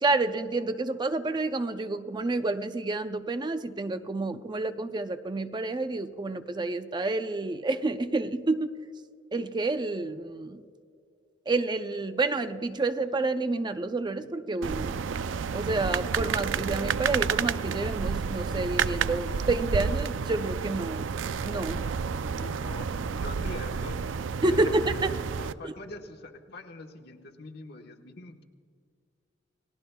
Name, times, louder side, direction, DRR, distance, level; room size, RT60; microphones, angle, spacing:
voice 1, 0.0-8.7 9.3-10.6 11.5-15.0 15.5-21.0 21.4-21.8 24.4-25.2, right 2 dB, 25° right, 9 dB, 0.5 m, -29 dB
sound 1, 14.6-25.5, right 6 dB, 85° right, 0.4 m, -30 dB
voice 2, 22.4-22.9 23.2-24.0 24.5-24.9 25.4-28.4, left 2 dB, 60° left, 3 dB, 1.3 m, -43 dB
29.5 x 18.0 x 2.3 m, 2.3 s
head